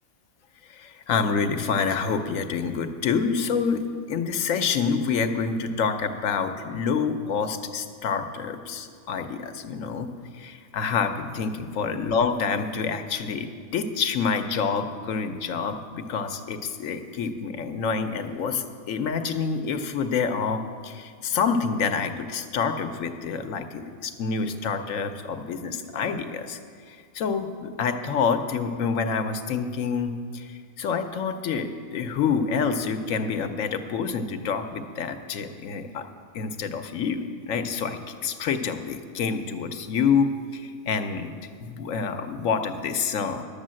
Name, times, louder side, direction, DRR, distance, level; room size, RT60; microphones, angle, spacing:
voice 1, 0.7-26.6 26.9-36.1 36.3-43.4, left 5 dB, 75° left, 7 dB, 1.1 m, -27 dB
11.5 x 7.0 x 7.5 m, 2.1 s
omnidirectional pair, 1.4 m